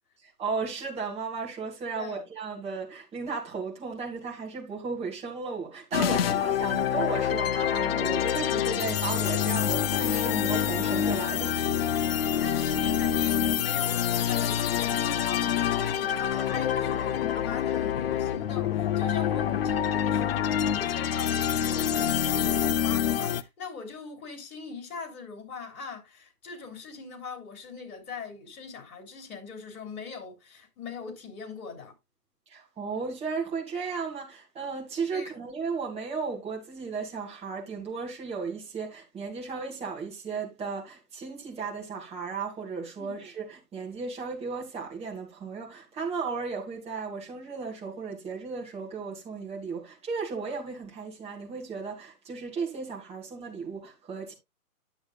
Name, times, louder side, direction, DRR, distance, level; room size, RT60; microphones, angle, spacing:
voice 1, 0.4-11.7 32.5-54.3, right 5 dB, 15° right, 2.5 m, -35 dB
sound 1, 5.9-23.4, left 9 dB, 40° left, 0.5 m, -26 dB
voice 2, 12.4-31.9 35.1-35.3 43.0-43.2, left 5 dB, 65° left, 3.6 m, -41 dB
10.0 x 7.9 x 2.4 m
hypercardioid pair, 140°, 47 cm